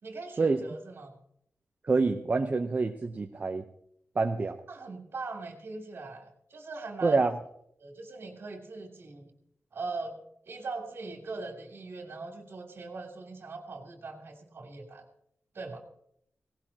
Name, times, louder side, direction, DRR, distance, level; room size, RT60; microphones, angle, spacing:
voice 1, 0.0-1.2 4.4-7.2 7.8-9.3 9.7-10.2 10.5-15.0 15.5-15.8, right 3 dB, 60° right, 1 dB, 3.0 m, -41 dB
voice 2, 1.9-3.6 4.2-4.5 7.0-7.3, right 3 dB, 35° right, 4 dB, 0.8 m, -26 dB
18.0 x 18.0 x 2.9 m, 0.73 s
wide cardioid pair, 140°, 5 cm